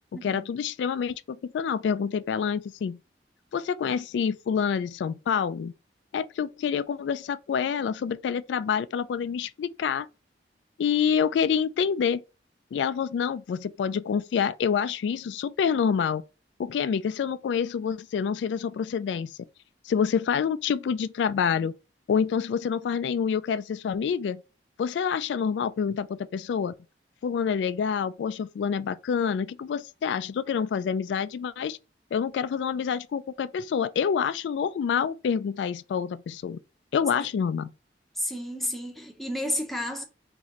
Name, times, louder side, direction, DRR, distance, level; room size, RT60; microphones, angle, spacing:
voice 1, 0.2-3.0 3.5-5.7 6.1-10.1 10.8-12.2 12.7-16.2 16.6-19.4 19.8-21.7 22.1-24.4 24.8-26.7 27.2-31.8 32.1-36.6 36.9-37.7, left 7 dB, 80° left, 0.3 m, -27 dB
voice 2, 38.2-40.0, left 1 dB, ahead, 0.8 m, -31 dB
4.0 x 3.0 x 2.9 m
head